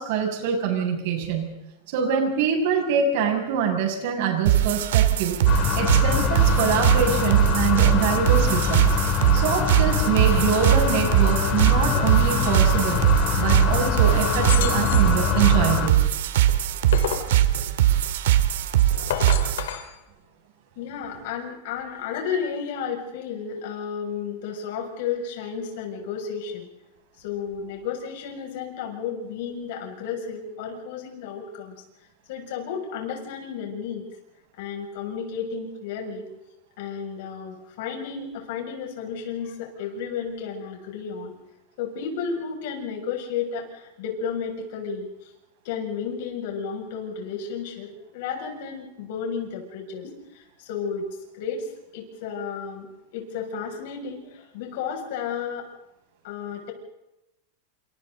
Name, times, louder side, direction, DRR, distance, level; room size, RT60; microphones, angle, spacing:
voice 1, 0.0-1.5 1.9-5.4 5.7-8.9 9.3-13.0 13.4-16.0, right 7 dB, 55° right, 2 dB, 6.7 m, -24 dB
sound 1, 4.5-19.7, right 12 dB, 75° right, 2.0 m, -21 dB
sound 2, 5.5-15.9, left 8 dB, 30° left, 2.9 m, -24 dB
sound 3, 14.4-15.2 16.5-17.3 18.9-19.9, left 10 dB, 90° left, 3.1 m, -30 dB
voice 2, 20.8-26.7 27.2-31.8 32.3-34.1 34.6-36.3 36.8-41.3 41.8-45.1 45.6-51.1 51.3-51.7 51.9-55.7 56.2-56.7, left 6 dB, 55° left, 2 dB, 6.5 m, -32 dB
28.5 x 27.5 x 4.0 m, 0.91 s
supercardioid pair, 170°, 0 cm